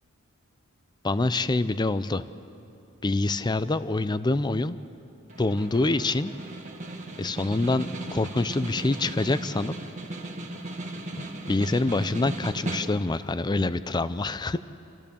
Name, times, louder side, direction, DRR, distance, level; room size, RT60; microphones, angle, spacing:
voice 1, 1.0-2.2 3.0-4.8 5.4-6.3 7.2-9.7 11.5-14.6, left 2 dB, 20° left, 14 dB, 0.5 m, -26 dB
Snare drum, 5.3-13.2, right 1 dB, 35° right, 1.7 m, -37 dB
28.0 x 14.5 x 6.9 m, 2.8 s
head